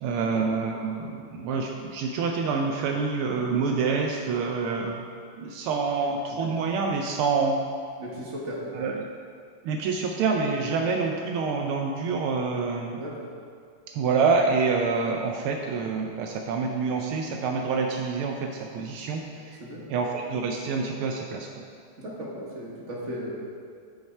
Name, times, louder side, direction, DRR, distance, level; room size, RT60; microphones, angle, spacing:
voice 1, 0.0-5.0 5.4-7.6 8.7-9.1 9.6-13.0 13.9-19.6 19.9-21.5, right 4 dB, 80° right, 1 dB, 1.5 m, -27 dB
voice 2, 8.0-8.6 13.0-13.3 19.6-19.9 22.0-23.3, equal, 35° right, -4 dB, 1.6 m, -36 dB
9.8 x 5.9 x 4.4 m, 2.2 s
omnidirectional pair, 2.4 m